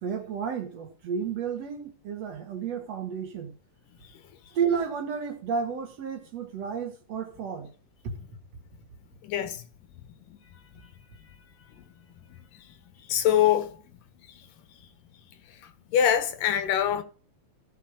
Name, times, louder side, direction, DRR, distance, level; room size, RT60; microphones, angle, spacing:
voice 1, 0.0-3.5 4.5-7.7, right 7 dB, 55° right, 2.6 m, -31 dB
voice 2, 9.2-9.6 13.1-13.7 15.9-17.0, left 10 dB, 75° left, 2.9 m, -23 dB
15.0 x 5.6 x 6.3 m
omnidirectional pair, 3.9 m